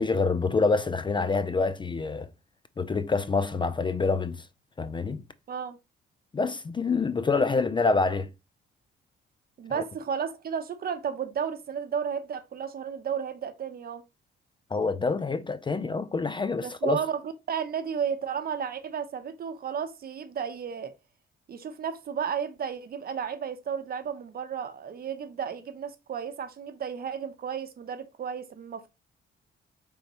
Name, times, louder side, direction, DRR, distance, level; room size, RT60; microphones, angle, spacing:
voice 1, 0.0-2.3 2.8-4.4 4.8-5.2 6.3-8.3 9.7-9.8 14.7-17.0, left 4 dB, 25° left, 0.4 m, -26 dB
voice 2, 5.5-5.8 9.6-14.0 16.6-20.9 21.5-28.9, right 7 dB, 50° right, 0.8 m, -33 dB
5.1 x 3.5 x 2.9 m
cardioid pair, 90°, 20 cm